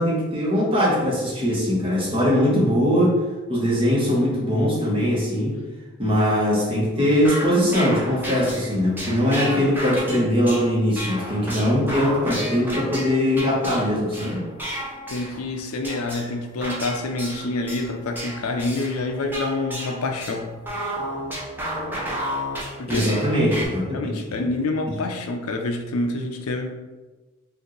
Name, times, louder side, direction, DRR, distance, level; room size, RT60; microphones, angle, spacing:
voice 1, 0.0-3.2 3.5-5.6 6.0-14.4 22.9-24.1, equal, 25° right, -6 dB, 1.1 m, -21 dB
sound 1, 7.0-15.5 15.8-23.7, equal, 10° right, 0.6 m, -32 dB
voice 2, 15.1-20.6 22.8-23.1 23.9-26.8, left 2 dB, 75° left, 4 dB, 0.5 m, -27 dB
4.8 x 2.6 x 3.1 m, 1.2 s
head